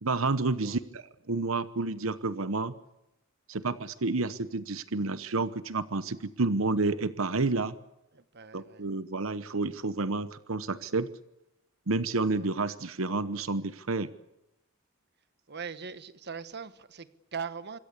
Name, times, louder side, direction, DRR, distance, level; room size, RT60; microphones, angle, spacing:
voice 1, 0.0-2.7 3.5-7.7 8.5-11.1 11.9-14.1, right 3 dB, 85° right, 14 dB, 1.0 m, -30 dB
voice 2, 8.1-8.9 12.3-12.5 15.5-17.8, right 6 dB, 55° right, 13 dB, 1.4 m, -40 dB
26.0 x 22.0 x 8.4 m, 0.86 s
head